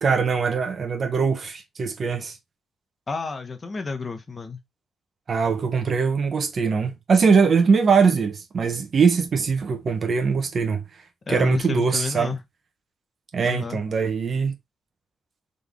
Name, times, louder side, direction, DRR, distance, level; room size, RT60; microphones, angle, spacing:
voice 1, 0.0-2.3 5.3-10.8 11.3-12.3 13.3-14.5, right 5 dB, 40° right, 1.0 m, -22 dB
voice 2, 3.1-4.6 11.3-12.4 13.4-13.8, left 4 dB, 25° left, 0.8 m, -30 dB
3.9 x 3.5 x 3.5 m
wide cardioid pair, 165°, 0 cm